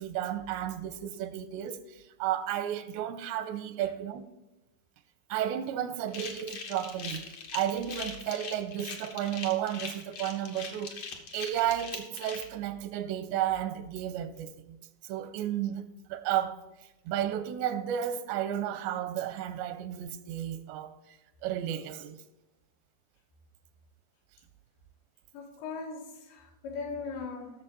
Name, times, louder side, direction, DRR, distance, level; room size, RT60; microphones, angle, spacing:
voice 1, 0.0-1.8 2.2-4.3 5.3-7.3 7.5-14.8 15.1-16.6 17.1-21.0 21.4-22.2, right 11 dB, 85° right, 2.8 m, -33 dB
sound 1, 6.1-12.4, left 5 dB, 60° left, 1.6 m, -41 dB
voice 2, 25.3-27.6, left 4 dB, 75° left, 4.0 m, -39 dB
16.0 x 6.8 x 4.1 m
omnidirectional pair, 5.1 m